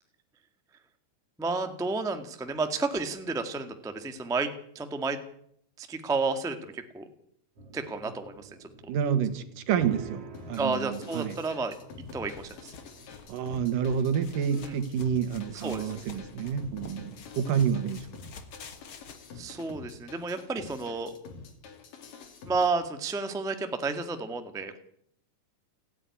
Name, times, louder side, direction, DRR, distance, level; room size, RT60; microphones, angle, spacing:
voice 1, 1.4-5.2 5.8-7.1 7.7-8.5 10.6-11.7 12.1-12.7 14.5-14.8 15.5-15.9 19.3-21.1 22.5-24.8, right 3 dB, 5° right, 7 dB, 0.6 m, -31 dB
sound 1, 7.6-18.5, right 5 dB, 50° right, 3.3 m, -50 dB
voice 2, 8.9-11.4 13.3-18.1, right 8 dB, 85° right, 10 dB, 3.2 m, -29 dB
sound 2, 10.3-22.7, left 4 dB, 85° left, 4.4 m, -48 dB
sound 3, 12.1-19.2, left 6 dB, 45° left, 2.2 m, -50 dB
29.5 x 9.8 x 9.7 m, 0.71 s
omnidirectional pair, 3.7 m